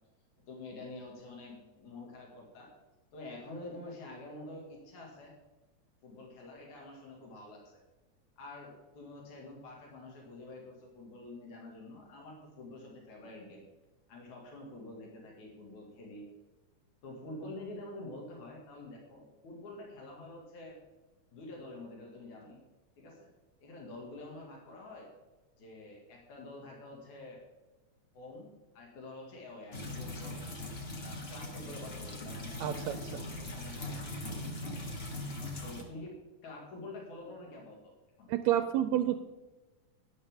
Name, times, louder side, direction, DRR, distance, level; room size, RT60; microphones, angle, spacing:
voice 1, 0.5-2.7 3.1-5.4 6.0-7.8 8.4-13.7 14.1-16.3 17.0-20.8 21.3-22.6 23.0-23.3 23.6-25.1 25.6-27.4 28.1-30.4 31.0-34.1 34.7-35.0 35.6-36.1 36.4-37.9 38.2-38.3, left 2 dB, 80° left, -1 dB, 3.6 m, -47 dB
sound 1, 29.7-35.8, left 1 dB, 35° left, 1.0 m, -40 dB
voice 2, 32.6-33.0 38.3-39.2, right 12 dB, 80° right, 10 dB, 1.7 m, -29 dB
12.5 x 11.0 x 3.6 m, 1.1 s
omnidirectional pair, 3.4 m